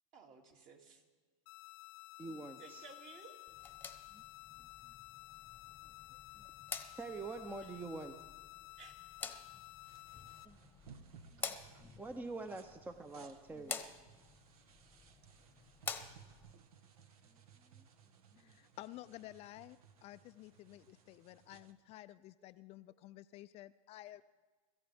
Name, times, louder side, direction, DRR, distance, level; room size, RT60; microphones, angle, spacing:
voice 1, 0.1-1.0 2.6-3.4 8.8-9.0 13.2-13.3, right 5 dB, 45° right, 2 dB, 2.5 m, -56 dB
sound 1, 1.5-10.5, left 20 dB, 65° left, 0.7 m, -54 dB
voice 2, 2.2-2.9 4.1-4.2 4.6-4.7 6.3-6.5 6.9-8.2 10.4-11.6 12.0-13.8 16.5-16.6 17.6-17.9 18.3-18.5, right 3 dB, 10° right, 8 dB, 0.6 m, -46 dB
sound 2, 3.5-16.5, left 5 dB, 10° left, 1.0 m, -49 dB
sound 3, 9.8-21.7, right 6 dB, 85° right, 1.3 m, -61 dB
voice 3, 18.4-24.2, left 15 dB, 35° left, 12 dB, 0.3 m, -53 dB
24.5 x 14.0 x 3.5 m, 1.4 s
supercardioid pair, 125°, 18 cm